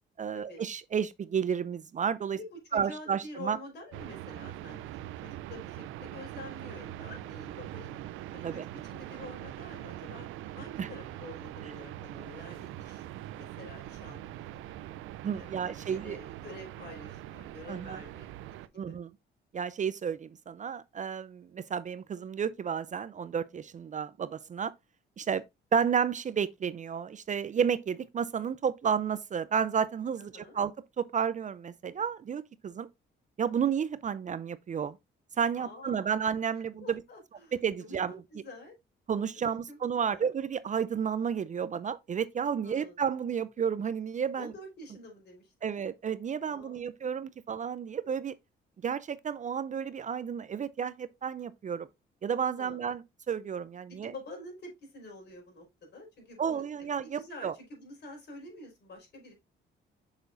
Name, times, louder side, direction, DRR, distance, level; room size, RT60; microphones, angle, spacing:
voice 1, 0.2-2.4 2.7-3.6 8.4-8.7 10.8-10.9 15.2-16.2 17.7-18.0 18.7-19.1 19.5-24.7 25.2-25.4 25.7-30.7 31.0-32.9 33.4-35.0 35.4-37.0 37.5-38.1 39.1-44.5 45.6-48.4 48.8-51.9 52.2-53.0 53.3-54.1 56.4-57.5, right 7 dB, 40° right, 0.5 m, -31 dB
voice 2, 2.3-4.9 5.2-8.0 8.3-10.3 10.5-14.8 15.3-18.6 18.9-19.0 30.2-30.6 35.5-36.1 36.5-38.7 39.3-39.8 40.1-40.3 42.6-43.0 44.3-45.5 46.5-46.9 47.3-47.4 52.5-52.9 54.0-59.3, left 2 dB, 60° left, 4.8 m, -48 dB
sound 1, 3.9-18.7, right 13 dB, 85° right, 0.5 m, -43 dB
7.0 x 6.4 x 2.6 m
cardioid pair, 90°, 20 cm